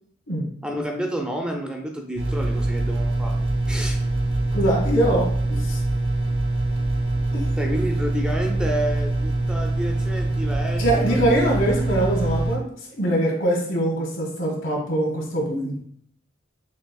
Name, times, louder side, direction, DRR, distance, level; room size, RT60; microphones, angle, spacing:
voice 1, 0.6-3.3 3.7-4.0 7.6-11.2, equal, 5° right, 2 dB, 0.4 m, -29 dB
sound 1, 2.1-12.5, right 2 dB, 60° right, 1.0 m, -24 dB
voice 2, 4.5-5.8 7.3-7.4 10.8-12.6 13.0-15.8, right 1 dB, 90° left, -2 dB, 1.6 m, -23 dB
6.0 x 2.8 x 2.3 m, 0.62 s
head